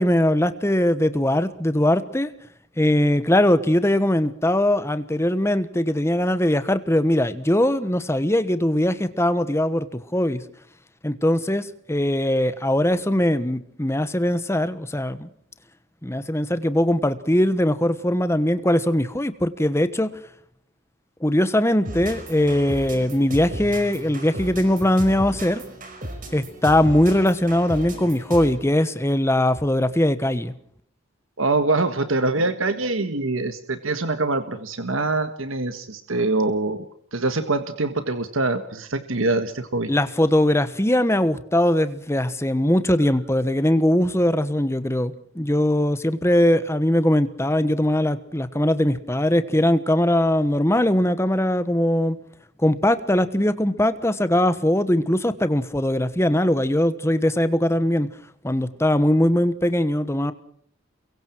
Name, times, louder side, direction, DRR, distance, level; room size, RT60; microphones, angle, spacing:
voice 1, 0.0-2.3 2.8-10.4 11.0-15.3 16.0-20.1 21.2-25.6 26.3-30.5 39.9-52.2 52.6-58.1 58.4-60.3, left 1 dB, 15° left, 12 dB, 1.2 m, -21 dB
sound 1, 21.8-28.7, right 1 dB, 40° right, 4.9 m, -35 dB
voice 2, 31.4-36.8 37.1-39.9, right 2 dB, 75° right, 9 dB, 1.6 m, -24 dB
29.5 x 23.0 x 4.6 m, 0.66 s
head